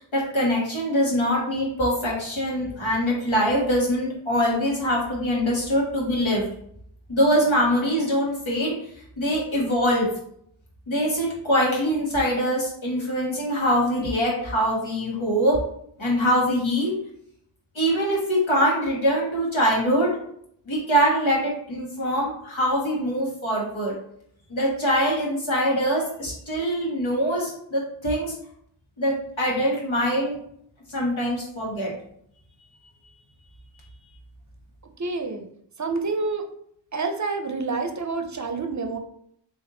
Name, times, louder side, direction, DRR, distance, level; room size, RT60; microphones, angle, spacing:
voice 1, 0.1-6.4 7.1-8.7 9.2-10.1 10.9-15.6 16.0-16.9 17.7-20.2 20.7-23.9 24.5-28.3 29.0-30.3 30.9-31.9, equal, 80° left, -3 dB, 1.4 m, -23 dB
voice 2, 35.0-35.5 35.8-36.5 36.9-39.0, right 3 dB, 40° right, 6 dB, 0.5 m, -28 dB
3.4 x 2.6 x 3.8 m, 0.68 s
wide cardioid pair, 50°, 46 cm